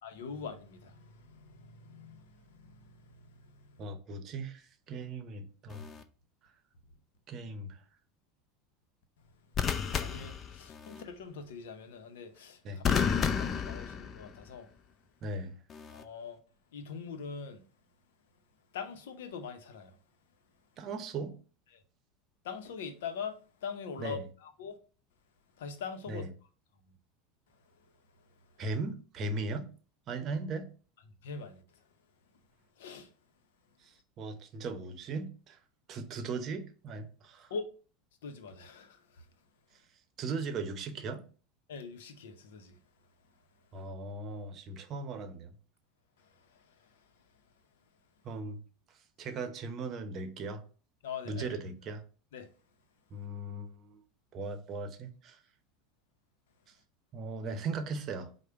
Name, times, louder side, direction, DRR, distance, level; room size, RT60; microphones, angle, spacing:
voice 1, 0.0-3.8 9.2-9.7 10.0-12.8 13.4-14.7 15.9-16.4 16.7-17.6 18.7-20.0 21.7-21.8 22.4-24.8 25.6-26.2 27.8-27.9 28.2-28.3 31.2-31.9 32.8-33.1 37.5-37.7 38.2-39.3 41.7-42.8 46.2-47.1 51.0-51.6 52.3-52.5, left 5 dB, 80° left, 0.7 m, -43 dB
voice 2, 3.8-5.9 7.3-7.8 12.6-13.0 15.2-15.6 20.8-21.3 24.0-24.2 26.1-26.3 28.6-29.7 30.1-30.7 33.8-35.6 35.9-37.5 40.2-41.2 43.7-45.5 48.2-48.6 49.2-50.6 51.3-52.0 53.1-54.0 54.3-55.4 57.1-58.3, right 3 dB, 45° right, 0.7 m, -38 dB
sound 1, 5.7-6.0 9.5-11.0 12.8-14.5 15.7-16.0, left 7 dB, 35° left, 0.5 m, -32 dB
4.9 x 2.1 x 4.4 m
hypercardioid pair, 100°, 0 cm